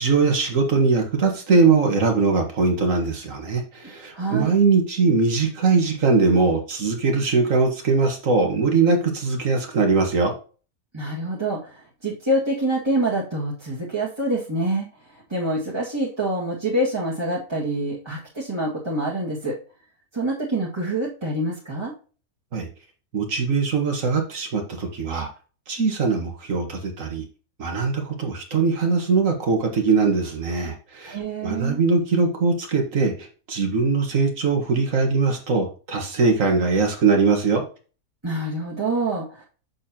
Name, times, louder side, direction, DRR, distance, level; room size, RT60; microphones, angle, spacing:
voice 1, 0.0-10.3 22.5-22.7 23.1-25.3 25.7-27.2 27.6-33.1 33.5-37.6, right 4 dB, 60° right, 4 dB, 2.0 m, -21 dB
voice 2, 4.1-4.5 10.9-14.9 15.3-19.6 20.1-21.9 31.1-31.8 38.2-39.4, right 1 dB, 15° right, -7 dB, 2.0 m, -26 dB
7.3 x 7.0 x 2.9 m, 0.37 s
omnidirectional pair, 1.6 m